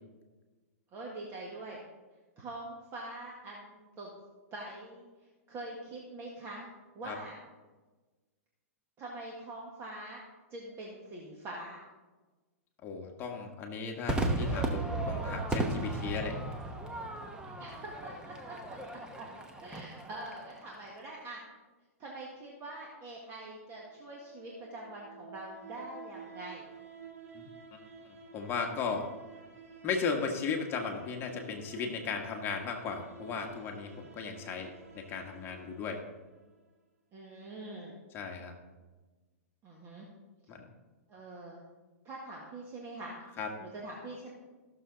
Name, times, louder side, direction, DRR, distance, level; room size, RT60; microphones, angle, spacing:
voice 1, 0.9-1.8 2.4-4.1 4.5-5.1 5.5-6.7 7.0-7.4 9.0-10.2 10.5-11.8 17.6-19.3 19.6-21.4 22.0-26.7 37.1-37.9 39.6-40.1 41.1-41.6 42.1-43.2 43.6-44.3, right 2 dB, 30° right, -3 dB, 1.8 m, -44 dB
voice 2, 12.8-16.4 27.3-27.8 28.0-29.1 29.8-36.0 38.1-38.5 40.5-40.7 43.4-43.5, left 5 dB, 25° left, 2 dB, 1.5 m, -36 dB
Crowd / Fireworks, 14.1-20.6, right 2 dB, 10° right, 1.0 m, -35 dB
sound 1, 23.6-36.6, right 4 dB, 90° right, 2.6 m, -52 dB
15.0 x 6.8 x 4.0 m, 1.3 s
hypercardioid pair, 135°, 8 cm